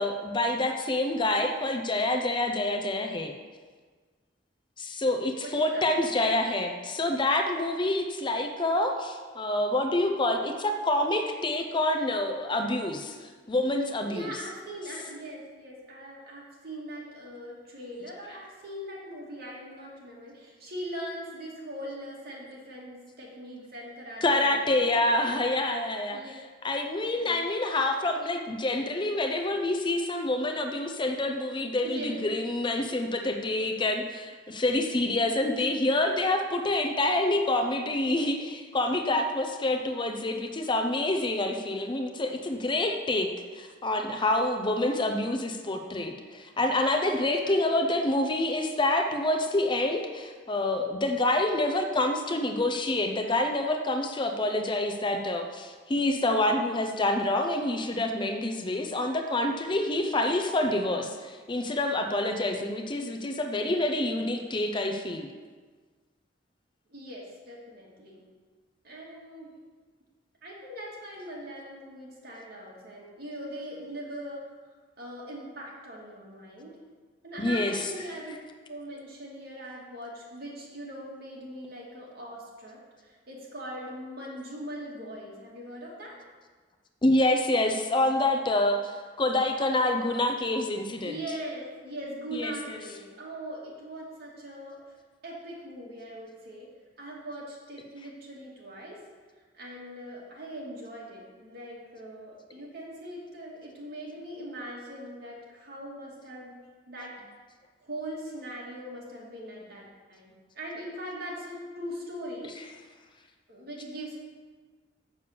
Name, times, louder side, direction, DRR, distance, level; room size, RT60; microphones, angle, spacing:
voice 1, 0.0-3.4 4.8-14.3 24.2-26.2 26.6-65.3 77.4-77.9 87.0-91.2 92.3-92.8, left 1 dB, 25° left, 5 dB, 0.6 m, -27 dB
voice 2, 5.4-6.2 14.1-25.2 26.1-26.3 27.1-27.5 31.8-32.2 39.0-39.2 47.0-47.9 59.5-59.6 66.9-68.2 68.8-69.6 70.4-74.4 75.0-76.7 77.2-78.4 78.7-86.2 91.0-94.8 95.2-96.7 97.0-99.0 99.5-106.6 106.9-107.1 107.8-112.5 113.5-114.2, right 1 dB, 55° right, -3 dB, 2.4 m, -41 dB
7.2 x 6.9 x 6.8 m, 1.5 s
head